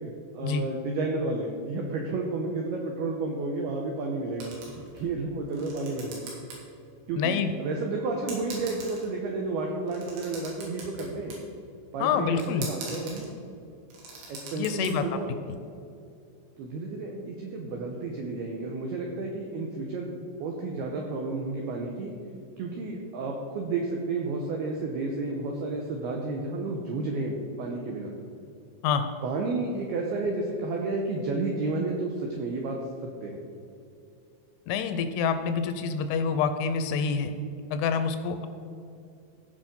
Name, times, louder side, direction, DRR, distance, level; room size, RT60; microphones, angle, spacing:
voice 1, 0.0-4.5 4.9-6.2 7.1-11.4 11.9-13.3 14.3-15.4 16.6-22.1 22.6-28.1 29.2-32.8 33.0-33.4, right 3 dB, 90° right, 1 dB, 2.2 m, -31 dB
sound 1, 4.4-5.1 5.5-6.6 6.9-7.0 7.8-7.9 8.3-9.3 9.8-11.4 12.4-13.3 13.7-14.9, right 3 dB, 70° right, 4.7 m, -42 dB
voice 2, 7.2-7.5 12.0-12.7 14.6-15.1 15.5-15.6 28.8-29.0 34.7-37.4 37.7-38.5, left 6 dB, 80° left, 9 dB, 2.9 m, -27 dB
16.0 x 5.5 x 5.3 m, 2.5 s
omnidirectional pair, 5.8 m